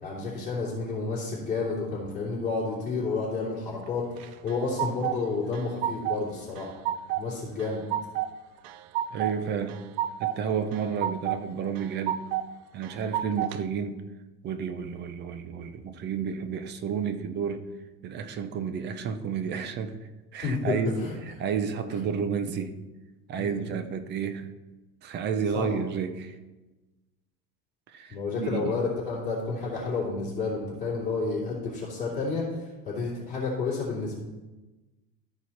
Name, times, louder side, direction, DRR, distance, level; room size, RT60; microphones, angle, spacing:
voice 1, 0.0-6.7 7.1-7.8 20.4-21.2 23.4-23.6 25.5-25.7 28.1-32.5 32.8-34.2, left 4 dB, 25° left, -8 dB, 2.8 m, -30 dB
sound 1, 4.2-5.2 5.5-6.3 6.6-7.2 7.6-8.3 8.6-9.3 9.7-10.4 10.7-11.4 11.8-12.5 12.8-13.6, right 12 dB, 80° right, 0.6 m, -30 dB
voice 2, 9.1-9.8 10.2-12.3 12.7-14.0 14.4-17.6 18.0-22.7 23.3-24.5 25.0-26.3 27.9-28.7, right 6 dB, 35° right, 10 dB, 0.7 m, -31 dB
13.0 x 4.6 x 4.2 m, 1.1 s
cardioid pair, 150°, 31 cm